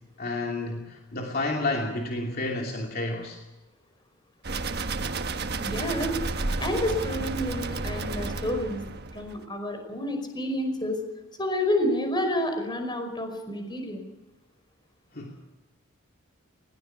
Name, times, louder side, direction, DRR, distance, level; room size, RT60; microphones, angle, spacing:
voice 1, 0.2-3.4 15.1-15.3, left 2 dB, 45° left, 1 dB, 2.7 m, -30 dB
sound 1, 4.4-9.4, right 3 dB, 50° right, 1.3 m, -31 dB
voice 2, 5.6-6.2 6.6-8.8 9.1-11.0 11.4-14.0, left 1 dB, 20° left, 5 dB, 5.3 m, -29 dB
20.5 x 18.5 x 7.1 m, 1.1 s
head